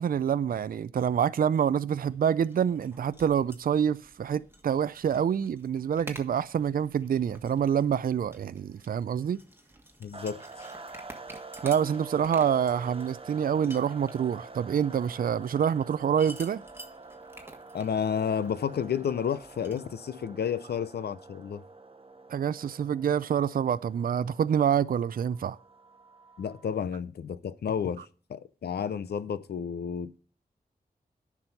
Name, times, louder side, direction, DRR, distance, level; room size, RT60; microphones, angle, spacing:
voice 1, 0.0-9.4 11.6-16.6 22.3-25.6, right 8 dB, 65° right, 0.4 m, -27 dB
sound 1, 1.9-19.8, right 1 dB, 15° right, 1.6 m, -51 dB
voice 2, 10.0-10.4 17.7-21.6 26.4-28.0 28.3-30.2, left 7 dB, 85° left, 0.6 m, -31 dB
sound 2, 10.1-26.8, right 3 dB, 35° right, 0.9 m, -47 dB
9.7 x 6.1 x 5.2 m
cardioid pair, 45°, 16 cm